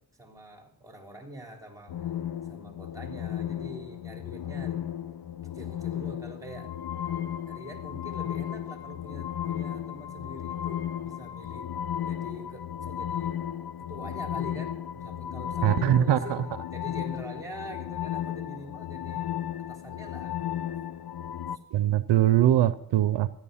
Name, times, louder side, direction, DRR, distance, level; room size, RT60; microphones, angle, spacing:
voice 1, 0.2-2.1 2.5-4.8 5.5-6.7 7.5-11.7 12.0-13.4 13.9-16.4 16.7-19.3 19.7-20.4, equal, 10° right, 2 dB, 3.8 m, -44 dB
sound 1, 1.9-21.6, left 10 dB, 60° left, 0.8 m, -34 dB
voice 2, 15.6-16.4 21.7-23.3, right 12 dB, 85° right, 16 dB, 0.6 m, -22 dB
14.0 x 10.5 x 5.5 m, 0.76 s
cardioid pair, 45°, 42 cm